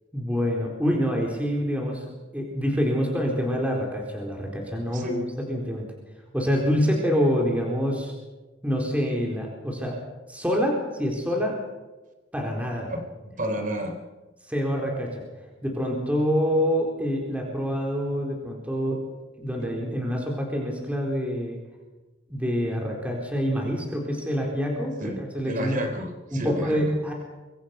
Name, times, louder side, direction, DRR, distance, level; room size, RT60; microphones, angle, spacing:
voice 1, 0.1-2.0 2.3-5.8 6.3-8.1 8.6-10.0 10.3-11.6 12.3-12.9 14.4-15.2 15.6-19.0 19.4-21.6 22.3-25.8 26.3-27.1, equal, 5° right, 0 dB, 4.1 m, -26 dB
voice 2, 12.9-14.0 19.6-19.7 25.0-25.2 25.5-27.0, equal, 45° right, 5 dB, 3.9 m, -31 dB
24.5 x 24.5 x 5.9 m, 1.2 s
head